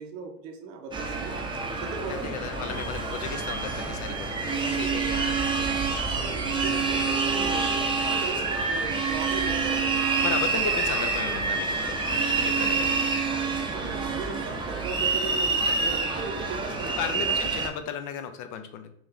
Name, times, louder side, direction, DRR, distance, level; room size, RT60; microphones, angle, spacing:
voice 1, 0.0-1.4 1.8-2.3 4.6-5.0 6.1-9.9 10.5-10.7 12.6-12.7 13.7-17.3, right 4 dB, 60° right, 3 dB, 0.9 m, -38 dB
sound 1, 0.9-17.7, right 4 dB, 10° right, 0.7 m, -27 dB
voice 2, 2.1-6.1 7.3-7.6 10.2-12.0 12.4-13.0 17.0-18.9, left 8 dB, 45° left, 9 dB, 0.7 m, -35 dB
4.5 x 2.7 x 3.7 m, 0.76 s
figure-of-eight pair, 80°, 44 cm